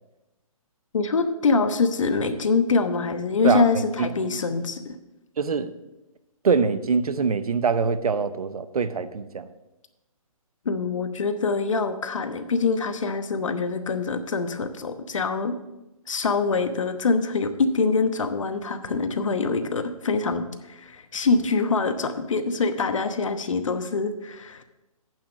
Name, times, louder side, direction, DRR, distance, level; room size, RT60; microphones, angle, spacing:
voice 1, 0.9-5.0 10.6-15.6 16.1-24.6, left 4 dB, 60° left, 1.0 m, -24 dB
voice 2, 3.4-4.4 5.4-5.7 6.4-9.5, right 5 dB, 85° right, 0.8 m, -24 dB
8.9 x 5.8 x 7.1 m
hypercardioid pair, 175°, 18 cm